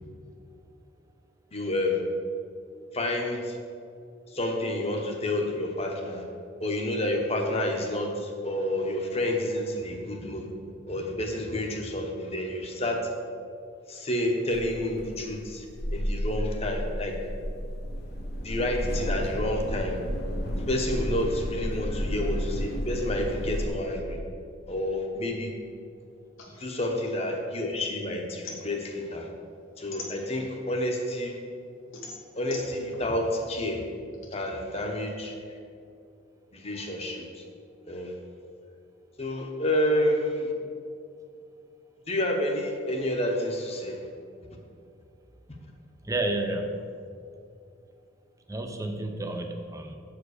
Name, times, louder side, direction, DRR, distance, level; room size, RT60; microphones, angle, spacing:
voice 1, 1.5-2.0 2.9-3.6 4.3-6.2 6.6-10.5 10.9-13.0 13.9-15.7 15.9-17.2 18.4-20.0 20.7-24.2 24.7-25.5 26.6-29.3 29.8-31.4 32.3-33.8 34.3-35.3 36.5-37.4 37.8-38.1 39.2-40.5 42.1-44.0, left 1 dB, 30° left, 2 dB, 0.9 m, -29 dB
sound 1, 14.5-23.7, equal, 50° left, 1.2 m, -32 dB
sound 2, 26.4-27.9 28.2-30.7 31.2-34.3, left 3 dB, 75° left, 1.3 m, -44 dB
voice 2, 46.0-46.9 48.5-50.0, right 2 dB, 15° right, 5 dB, 0.5 m, -31 dB
7.6 x 5.0 x 6.4 m, 2.4 s
head